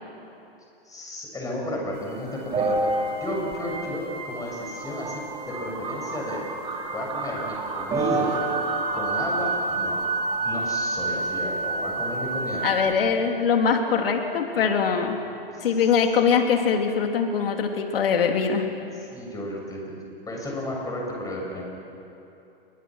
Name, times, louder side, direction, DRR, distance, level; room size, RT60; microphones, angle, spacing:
voice 1, 0.8-2.9 3.2-5.2 5.5-6.4 6.9-8.5 8.9-10.0 10.4-12.9 15.5-15.8 18.9-20.0 20.3-21.6, left 1 dB, 10° left, -1 dB, 7.2 m, -33 dB
sound 1, 2.0-12.9, right 3 dB, 20° right, 3.1 m, -28 dB
voice 2, 12.6-15.2 15.6-18.7, left 6 dB, 70° left, 4 dB, 3.1 m, -22 dB
28.5 x 22.0 x 6.4 m, 2.8 s
hypercardioid pair, 125°, 30 cm